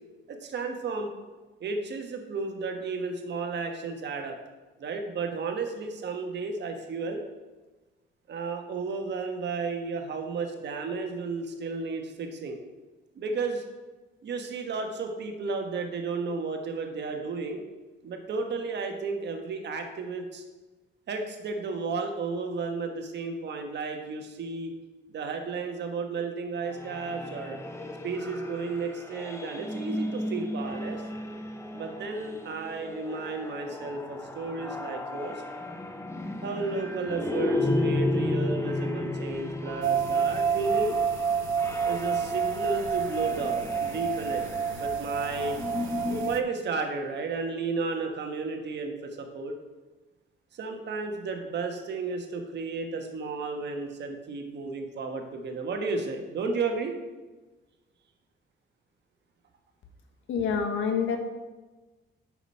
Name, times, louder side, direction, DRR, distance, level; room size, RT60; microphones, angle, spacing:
voice 1, 0.3-1.1 1.6-4.4 4.8-7.2 8.3-12.6 13.1-13.6 14.2-17.6 18.0-20.4 21.1-24.7 25.1-27.6 28.0-31.0 31.7-35.4 36.4-41.0 41.8-44.4 44.8-45.6 46.0-49.5 50.5-57.0, right 4 dB, 60° right, 4 dB, 1.5 m, -33 dB
sound 1, 26.7-46.5, left 2 dB, 15° left, 1.1 m, -34 dB
sound 2, 39.8-46.4, right 6 dB, 80° right, 0.6 m, -28 dB
voice 2, 60.3-61.2, left 6 dB, 75° left, 5 dB, 1.4 m, -27 dB
8.0 x 6.1 x 5.5 m, 1.2 s
cardioid pair, 90°, 20 cm